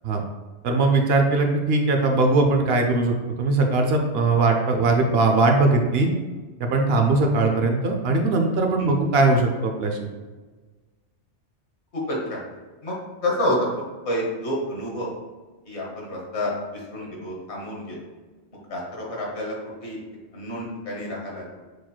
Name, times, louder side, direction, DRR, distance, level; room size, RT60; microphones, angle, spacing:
voice 1, 0.6-6.1 6.6-10.1, right 3 dB, 65° right, 3 dB, 0.8 m, -20 dB
voice 2, 11.9-12.4 12.8-13.0 13.2-13.7 14.0-15.1 15.7-18.0 18.7-19.5 19.8-20.0 20.3-21.4, left 1 dB, 75° left, -3 dB, 1.5 m, -28 dB
6.4 x 3.0 x 2.3 m, 1.3 s
omnidirectional pair, 1.2 m